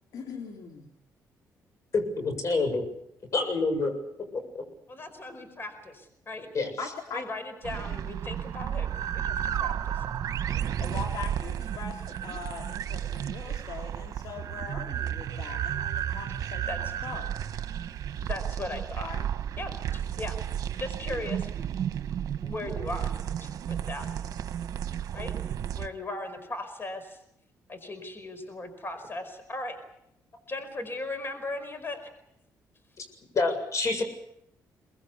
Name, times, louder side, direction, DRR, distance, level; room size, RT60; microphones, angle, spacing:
voice 1, 0.1-0.9 6.8-7.2 10.8-17.5 19.0-19.2, left 5 dB, 70° left, 2 dB, 3.0 m, -41 dB
voice 2, 1.9-2.8 3.3-3.9 4.5-4.6 6.5-6.7 33.0-33.1 33.3-34.0, left 3 dB, 50° left, 7 dB, 7.3 m, -27 dB
voice 3, 4.9-6.5 7.1-10.0 16.7-16.8 18.3-19.1 19.6-20.4 20.8-21.5 22.4-24.1 25.1-25.3 25.8-27.2 27.7-29.8 30.5-32.1, left 2 dB, 35° left, 10 dB, 4.9 m, -38 dB
sound 1, 7.6-25.9, right 9 dB, 65° right, 1.4 m, -33 dB
23.5 x 20.5 x 8.4 m, 0.79 s
cardioid pair, 90°, 7 cm